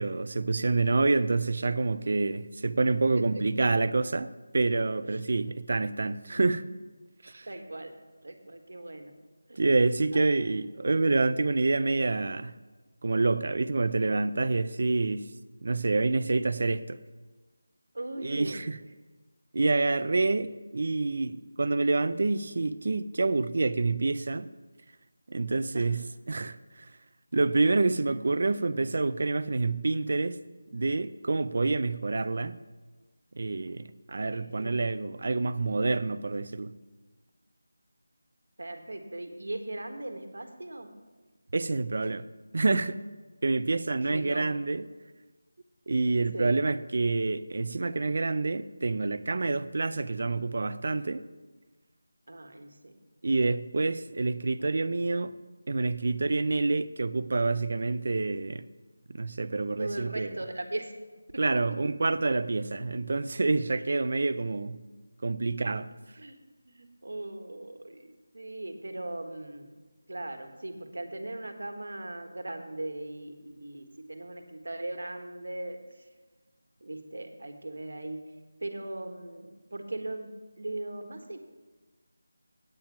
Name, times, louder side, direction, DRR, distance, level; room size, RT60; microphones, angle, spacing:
voice 1, 0.0-6.6 7.2-7.5 9.6-12.5 13.0-15.3 15.6-17.0 18.2-18.8 19.5-24.5 25.3-26.9 27.3-30.4 30.7-32.6 33.4-36.7 41.5-42.3 42.5-43.0 43.4-44.9 45.9-51.2 53.2-55.3 55.7-58.7 59.1-60.4 61.4-64.8 65.2-65.9, right 3 dB, 45° right, 0.4 m, -27 dB
voice 2, 7.5-7.9 8.2-9.1 9.5-9.7 10.1-10.3 17.9-18.6 20.1-20.4 25.7-25.9 27.6-27.7 34.3-34.7 38.6-40.9 44.1-44.5 46.3-46.5 52.3-52.9 59.8-60.9 66.2-66.3 66.6-69.7 70.1-75.8 76.8-78.2 78.6-80.3 80.6-81.4, right 2 dB, 75° right, 1.4 m, -39 dB
8.9 x 8.9 x 5.8 m
figure-of-eight pair, 175°, 0 cm